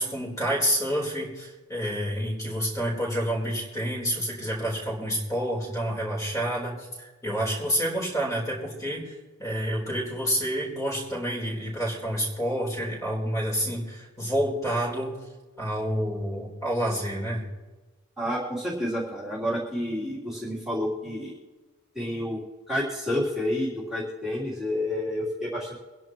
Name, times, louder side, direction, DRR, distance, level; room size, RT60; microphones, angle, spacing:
voice 1, 0.0-9.1 9.4-15.2 15.6-17.4, equal, 15° left, -3 dB, 4.1 m, -28 dB
voice 2, 18.2-21.3 21.9-22.4 22.7-25.8, left 1 dB, ahead, -8 dB, 3.3 m, -29 dB
25.0 x 10.5 x 3.1 m, 1.2 s
head